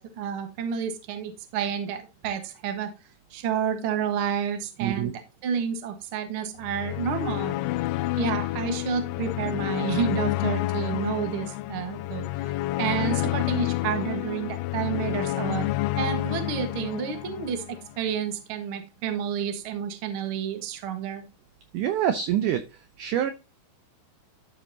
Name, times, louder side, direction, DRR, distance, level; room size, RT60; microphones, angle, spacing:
voice 1, 0.0-2.9 3.3-5.1 5.4-7.5 8.2-12.3 12.8-15.6 16.0-21.2, right 8 dB, 60° right, 6 dB, 1.3 m, -30 dB
voice 2, 4.8-5.1 21.7-22.6 23.0-23.3, right 10 dB, 85° right, 9 dB, 1.8 m, -25 dB
sound 1, 6.6-17.9, left 17 dB, 85° left, 2.5 m, -29 dB
13.0 x 5.3 x 2.8 m, 0.27 s
omnidirectional pair, 4.6 m